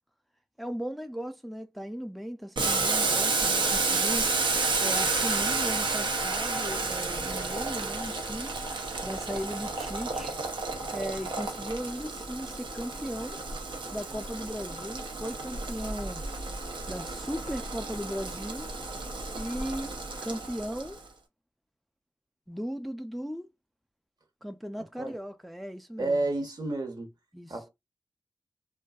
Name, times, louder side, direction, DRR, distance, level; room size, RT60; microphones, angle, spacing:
voice 1, 0.6-4.3 4.8-8.5 9.0-10.3 10.9-13.4 13.9-16.2 16.9-18.7 19.3-21.0 22.5-23.5 24.4-26.2 27.3-27.6, equal, ahead, 0.4 m, -37 dB
Boiling, 2.6-21.0, right 3 dB, 80° right, 0.7 m, -31 dB
voice 2, 26.0-27.1 27.5-27.7, right 2 dB, 55° right, 1.0 m, -30 dB
2.5 x 2.2 x 2.3 m
cardioid pair, 45°, 8 cm